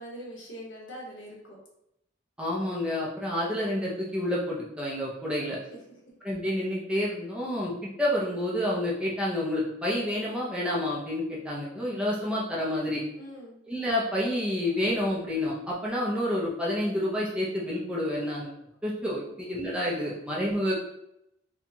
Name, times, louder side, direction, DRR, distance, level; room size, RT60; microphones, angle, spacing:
voice 1, 0.0-1.6 13.2-13.6 19.2-19.3, equal, 75° left, -2 dB, 1.1 m, -43 dB
voice 2, 2.4-5.6 6.2-13.0 13.7-18.5 18.8-20.7, left 1 dB, 5° right, -6 dB, 0.6 m, -29 dB
4.3 x 2.3 x 2.7 m, 0.81 s
head